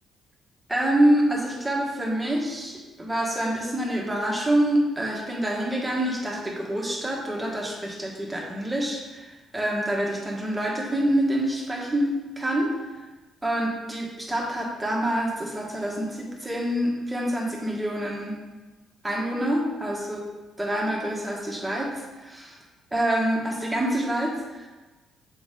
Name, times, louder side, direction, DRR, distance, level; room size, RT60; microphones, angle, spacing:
voice 1, 0.7-12.7 13.4-18.4 19.0-20.2 20.6-22.6 22.9-24.7, right 1 dB, 10° right, -2 dB, 1.4 m, -26 dB
7.1 x 4.0 x 3.8 m, 1.2 s
cardioid pair, 105°, 0 cm